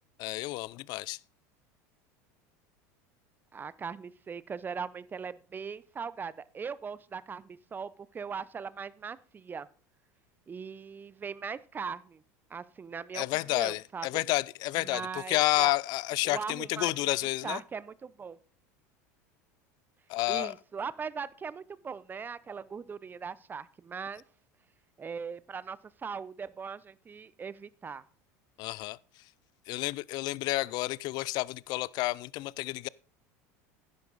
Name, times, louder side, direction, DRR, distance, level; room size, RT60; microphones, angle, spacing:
voice 1, 0.2-1.2 13.1-17.6 20.1-20.5 28.6-29.0 29.7-32.9, left 20 dB, 55° left, 0.4 m, -30 dB
voice 2, 3.5-9.7 10.5-12.2 12.5-14.2 14.8-15.7 16.2-17.2 17.4-18.4 20.3-24.2 25.0-28.0, right 6 dB, 25° right, 0.6 m, -40 dB
11.0 x 10.5 x 4.0 m
supercardioid pair, 100°, 9 cm